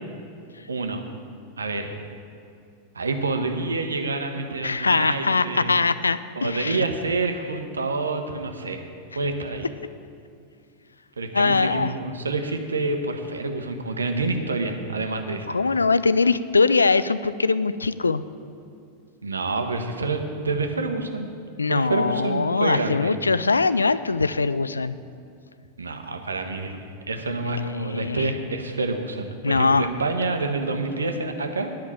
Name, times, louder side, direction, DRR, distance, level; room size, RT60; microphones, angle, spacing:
voice 1, 0.7-1.0 1.6-2.0 2.9-5.7 6.4-8.8 9.1-9.7 11.2-15.6 19.2-21.3 21.7-23.1 25.8-31.7, right 3 dB, 75° right, 5 dB, 1.0 m, -27 dB
voice 2, 4.6-6.8 11.3-11.9 15.5-18.2 21.6-24.9 27.5-28.3 29.4-29.9, left 4 dB, 75° left, 15 dB, 0.3 m, -22 dB
10.5 x 5.8 x 8.5 m, 2.4 s
figure-of-eight pair, 90°, 0 cm